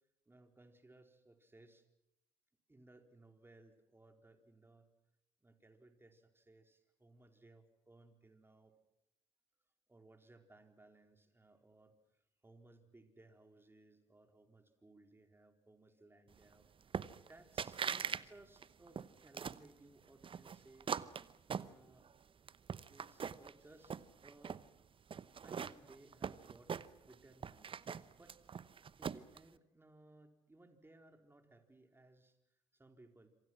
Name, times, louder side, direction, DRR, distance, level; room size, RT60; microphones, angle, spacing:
voice 1, 0.3-1.9 2.7-4.9 5.4-8.7 9.9-20.9 21.5-22.1 22.9-24.6 25.4-26.8 27.1-27.8 28.2-28.4 29.0-33.3, right 2 dB, 15° right, 5 dB, 4.3 m, -63 dB
sound 1, 16.9-17.3 17.6-18.2 18.6-19.7 20.2-22.1 22.5-23.5 23.8-24.6 25.1-27.1 27.4-29.4, right 7 dB, 35° right, 1.0 m, -41 dB
26.5 x 26.5 x 6.2 m, 0.83 s
hypercardioid pair, 55°, 15 cm